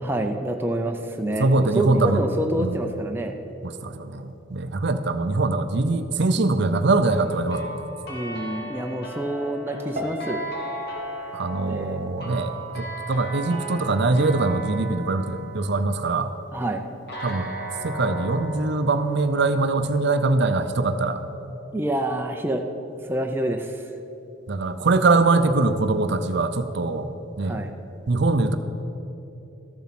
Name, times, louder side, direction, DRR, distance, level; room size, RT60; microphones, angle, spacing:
voice 1, 0.0-3.3 8.1-10.4 11.7-12.1 16.5-16.8 21.7-22.6 23.1-23.8 27.4-27.7, right 1 dB, 10° right, 3 dB, 0.5 m, -27 dB
voice 2, 1.4-2.2 2.6-2.8 3.6-7.8 11.3-16.3 17.2-17.5 17.8-21.2 24.5-27.1 27.4-27.6 28.1-28.6, right 3 dB, 55° right, 9 dB, 0.6 m, -22 dB
sound 1, 7.1-16.3 17.1-20.0, right 2 dB, 50° left, 2.0 m, -37 dB
Piano, 9.9-13.0 13.3-13.8, left 2 dB, 35° right, 1.4 m, -36 dB
13.5 x 7.2 x 5.9 m, 2.9 s
head